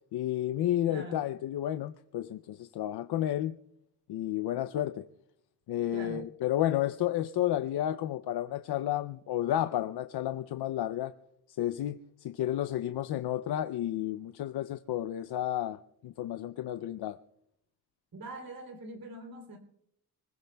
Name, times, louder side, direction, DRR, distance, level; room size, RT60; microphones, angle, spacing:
voice 1, 0.1-3.6 4.1-5.0 5.7-11.1 11.6-15.8 16.0-17.2, left 12 dB, 80° left, 0.5 m, -31 dB
voice 2, 0.9-1.2 5.9-6.3 18.1-19.6, right 2 dB, 60° right, 3.2 m, -43 dB
25.5 x 21.0 x 2.2 m
wide cardioid pair, 165°, 38 cm